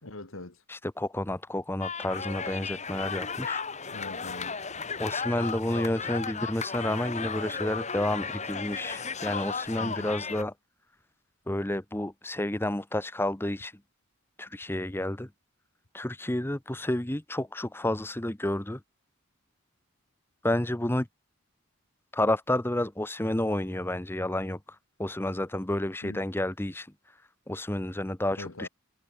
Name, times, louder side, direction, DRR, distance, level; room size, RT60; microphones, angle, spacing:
voice 1, 0.0-0.6 3.9-4.6 9.8-10.1 26.0-26.2 28.4-28.7, left 2 dB, 65° left, 2.3 m, -42 dB
voice 2, 0.7-3.6 5.0-10.5 11.5-13.7 14.4-15.3 15.9-18.8 20.4-21.1 22.1-24.6 25.0-26.9 27.5-28.7, left 1 dB, 10° left, 0.8 m, -30 dB
sound 1, 1.8-10.4, left 5 dB, 30° left, 3.8 m, -35 dB
head